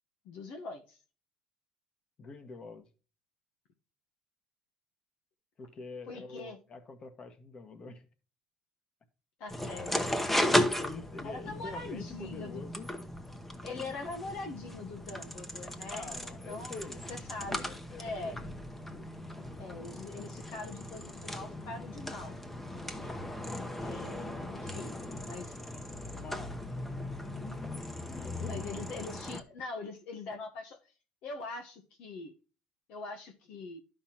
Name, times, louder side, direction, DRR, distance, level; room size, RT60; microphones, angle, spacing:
voice 1, 0.2-1.0 6.1-6.6 9.4-10.0 11.2-12.6 13.6-16.1 16.5-16.8 17.1-18.4 18.9-19.1 19.6-22.4 23.8-25.6 28.4-30.9 31.2-32.3 32.9-33.8, left 3 dB, 75° left, 1.0 m, -42 dB
voice 2, 2.2-2.9 5.6-8.1 10.5-12.9 13.7-13.9 15.9-17.1 17.9-18.4 23.0-23.2 26.1-26.5 28.0-28.7, left 3 dB, 40° left, 1.5 m, -46 dB
sound 1, 9.5-29.4, left 1 dB, 10° left, 1.0 m, -36 dB
12.0 x 5.6 x 2.8 m
supercardioid pair, 90°, 2 cm